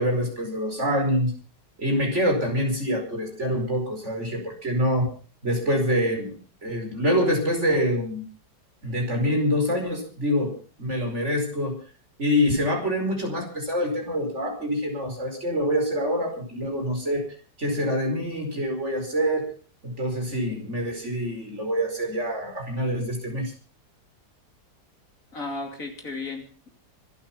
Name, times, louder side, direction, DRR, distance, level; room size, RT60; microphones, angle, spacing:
voice 1, 0.0-1.4 1.8-5.1 5.4-6.4 6.6-8.2 8.8-10.5 10.8-11.8 12.2-17.3 17.6-19.5 19.8-23.5, equal, 40° right, 3 dB, 5.2 m, -25 dB
voice 2, 25.3-26.7, left 3 dB, 50° left, 4 dB, 3.2 m, -34 dB
25.5 x 9.1 x 5.7 m, 0.40 s
omnidirectional pair, 1.8 m